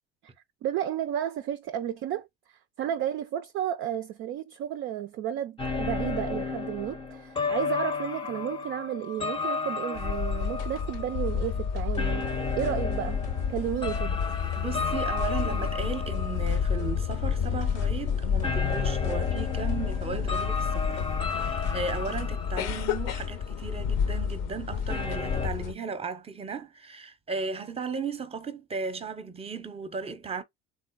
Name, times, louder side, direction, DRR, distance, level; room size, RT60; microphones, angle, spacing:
voice 1, 0.6-2.3 2.8-12.3 12.6-14.2, right 11 dB, 40° right, 0.4 m, -32 dB
sound 1, 5.6-17.4 17.7-17.9 18.4-23.9 24.2-24.3 24.9-25.5, left 4 dB, 15° left, 0.7 m, -34 dB
sound 2, 10.0-25.7, left 7 dB, 50° left, 0.7 m, -30 dB
sound 3, 11.9-22.3, left 5 dB, 75° left, 1.0 m, -45 dB
voice 2, 14.6-21.0 21.2-30.4, right 4 dB, 20° right, 0.7 m, -36 dB
3.6 x 2.2 x 4.0 m
figure-of-eight pair, 60°, 33 cm